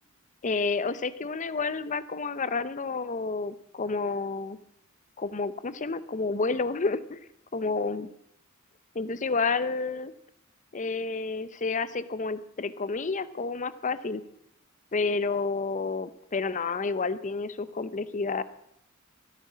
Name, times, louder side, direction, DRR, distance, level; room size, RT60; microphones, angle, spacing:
voice 1, 0.4-4.6 5.2-7.2 7.5-8.1 8.9-10.1 10.7-14.2 14.9-18.4, left 4 dB, 35° left, 15 dB, 0.7 m, -30 dB
15.0 x 12.5 x 6.3 m, 0.76 s
head